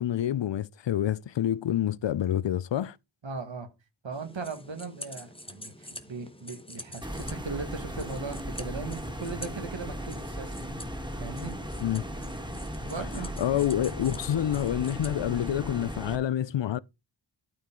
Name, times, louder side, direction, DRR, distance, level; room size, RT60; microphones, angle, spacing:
voice 1, 0.0-3.0 11.8-12.0 13.2-16.8, left 11 dB, 70° left, 0.5 m, -28 dB
voice 2, 3.2-3.7 4.0-10.5 11.2-11.5 12.8-13.3, right 4 dB, 75° right, 1.8 m, -38 dB
sound 1, 4.1-15.6, left 1 dB, 10° left, 1.1 m, -47 dB
sound 2, 7.0-16.2, equal, 10° right, 1.7 m, -37 dB
12.5 x 4.6 x 3.8 m
wide cardioid pair, 65°, 46 cm